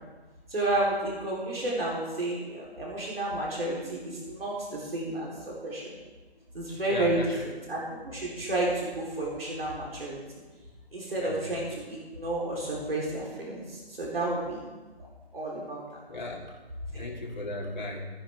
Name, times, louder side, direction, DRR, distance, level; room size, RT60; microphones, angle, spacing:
voice 1, 0.5-6.0 6.5-10.2 10.9-14.7 15.3-15.8 16.9-17.1, right 2 dB, 65° right, -5 dB, 4.0 m, -31 dB
voice 2, 6.9-7.4 11.2-11.4 16.1-16.5 17.0-18.0, left 2 dB, 45° left, -2 dB, 2.6 m, -35 dB
15.5 x 10.0 x 3.6 m, 1.3 s
hypercardioid pair, 175°, 32 cm